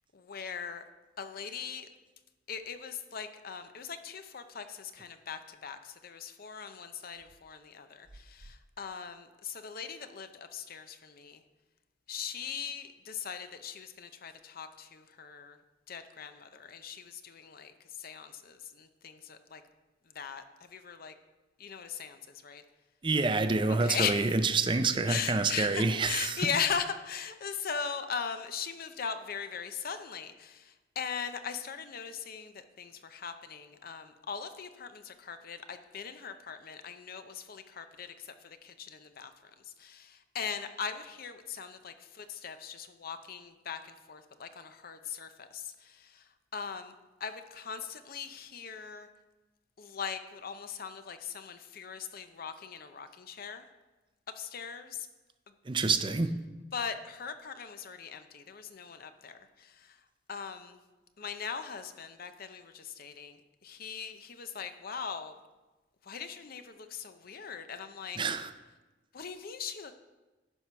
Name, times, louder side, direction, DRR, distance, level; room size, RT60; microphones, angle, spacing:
voice 1, 0.1-0.8 1.2-1.9 2.5-11.4 12.1-15.6 15.9-19.6 20.1-21.1 21.6-22.6 23.8-24.4 25.1-46.9 47.2-49.1 49.8-53.7 54.4-55.1 56.7-60.0 60.3-60.8 61.2-65.4 66.0-68.2 69.1-69.9, left 6 dB, 50° left, 10 dB, 0.6 m, -40 dB
voice 2, 23.0-26.5 55.7-56.3 68.2-68.5, right 3 dB, 25° right, 9 dB, 0.5 m, -27 dB
11.0 x 4.6 x 5.6 m, 1.2 s
head